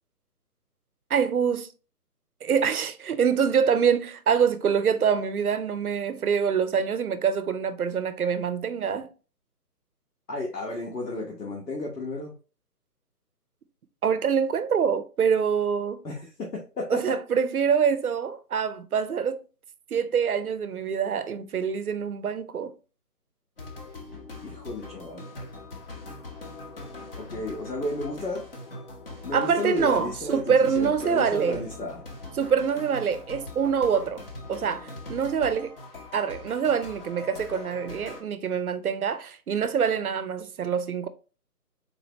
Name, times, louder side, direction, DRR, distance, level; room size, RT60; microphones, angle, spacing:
voice 1, 1.1-1.7 2.4-9.1 14.0-16.0 16.9-19.4 19.9-22.7 29.3-31.6 32.4-34.2 34.5-35.7 36.1-41.1, right 7 dB, 65° right, 0.6 m, -25 dB
voice 2, 10.3-12.3 16.0-17.2 24.4-25.3 27.2-28.4 29.2-32.0, left 2 dB, 85° left, 1.2 m, -33 dB
sound 1, 23.6-38.2, left 2 dB, 35° left, 0.7 m, -42 dB
3.9 x 2.8 x 2.9 m
figure-of-eight pair, 160°, 48 cm